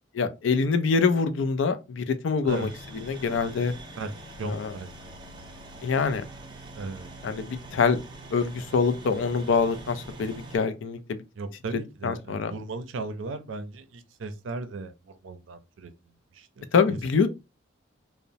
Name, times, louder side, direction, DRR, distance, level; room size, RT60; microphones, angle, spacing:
voice 1, 0.1-3.7 4.4-4.7 5.8-6.3 7.2-8.0 8.3-11.2 12.0-12.5 16.7-17.3, left 5 dB, 75° left, 0.4 m, -25 dB
voice 2, 2.4-2.7 3.9-5.5 6.7-7.3 11.4-15.9 16.3-17.0, right 3 dB, 80° right, 0.5 m, -37 dB
sound 1, 2.5-10.6, right 1 dB, 25° right, 0.5 m, -44 dB
2.9 x 2.0 x 2.6 m
head